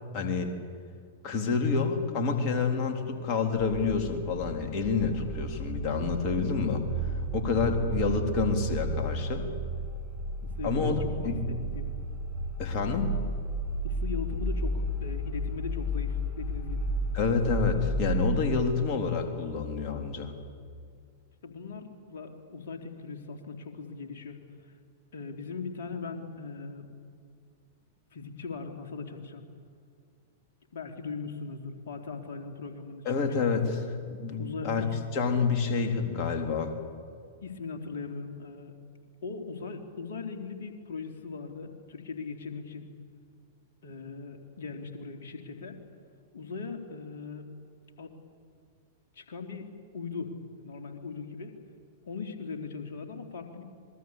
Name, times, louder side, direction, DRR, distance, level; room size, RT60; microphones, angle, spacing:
voice 1, 0.1-0.5 1.2-6.8 7.3-9.5 10.6-11.4 12.6-13.1 17.1-20.3 33.1-34.9 35.1-36.8, left 5 dB, 40° left, 4 dB, 3.7 m, -28 dB
sound 1, 3.6-18.3, right 1 dB, 15° left, 7.1 m, -33 dB
voice 2, 5.3-5.7 10.4-11.9 13.8-16.9 21.4-24.7 25.1-26.9 28.1-29.4 30.7-33.5 34.4-35.0 37.4-38.7 39.2-42.9 43.8-45.8 46.3-47.5 48.0-48.1 49.2-50.3 50.6-51.6 52.1-53.6, left 4 dB, 60° left, 4 dB, 3.4 m, -39 dB
26.0 x 22.0 x 8.5 m, 2.2 s
figure-of-eight pair, 100°, 0 cm